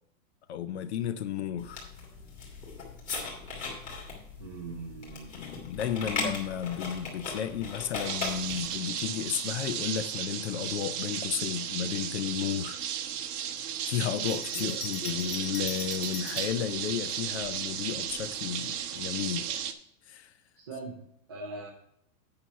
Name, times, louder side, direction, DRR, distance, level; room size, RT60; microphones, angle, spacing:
voice 1, 0.5-1.9 5.3-12.8 13.9-19.6 20.1-20.3, left 9 dB, 50° left, 0.5 m, -33 dB
sound 1, 1.6-8.8, left 3 dB, 15° left, 1.8 m, -38 dB
voice 2, 4.4-5.3 14.5-14.8 15.1-15.2 20.6-21.0 21.3-21.7, right 3 dB, 20° right, 0.4 m, -41 dB
sound 2, 8.0-19.7, right 9 dB, 85° right, 1.0 m, -35 dB
Bell, 14.2-16.6 17.4-18.3, left 8 dB, 85° left, 1.4 m, -42 dB
8.8 x 5.6 x 5.5 m
supercardioid pair, 175°, 44 cm